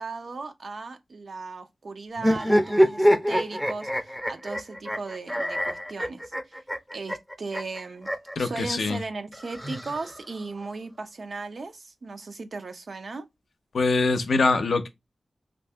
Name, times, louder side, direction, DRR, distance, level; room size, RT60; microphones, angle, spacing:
voice 1, 0.0-6.6 6.9-8.1 8.4-13.3, right 3 dB, 70° right, 0.5 m, -37 dB
sound 1, 2.2-8.4 9.3-10.5, equal, ahead, 0.5 m, -25 dB
voice 2, 8.4-9.0 13.7-14.9, left 3 dB, 90° left, 0.5 m, -23 dB
2.7 x 2.5 x 3.3 m
wide cardioid pair, 80°, 0 cm